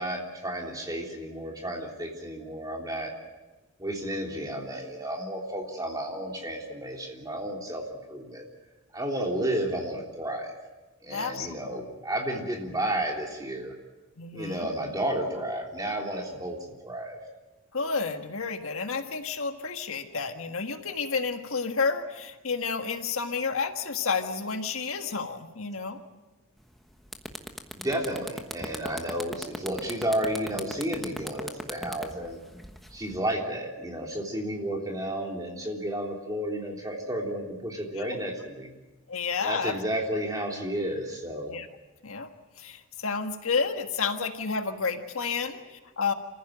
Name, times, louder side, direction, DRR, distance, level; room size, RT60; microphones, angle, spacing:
voice 1, 0.0-3.1 3.8-8.4 8.9-10.5 11.0-13.7 14.3-17.2 27.7-32.4 32.9-38.7 39.4-41.5, right 1 dB, 15° right, 0 dB, 3.4 m, -32 dB
voice 2, 11.1-11.6 14.2-14.7 17.7-26.0 37.9-38.1 39.1-39.8 41.5-41.7 42.0-42.3 42.6-46.1, left 5 dB, 75° left, 6 dB, 1.6 m, -30 dB
sound 1, 26.6-26.8 27.1-33.2, equal, ahead, 1.2 m, -38 dB
27.5 x 15.0 x 8.9 m, 1.1 s
head